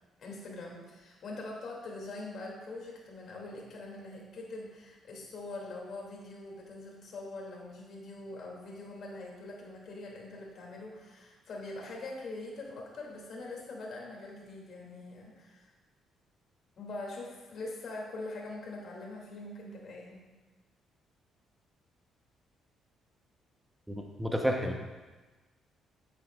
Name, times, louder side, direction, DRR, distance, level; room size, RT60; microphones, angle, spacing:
voice 1, 0.2-15.7 16.8-20.2, left 2 dB, 60° left, -2 dB, 2.4 m, -43 dB
voice 2, 23.9-24.8, equal, 5° right, 2 dB, 0.8 m, -31 dB
10.5 x 7.8 x 2.4 m, 1.2 s
cardioid pair, 85°, 0 cm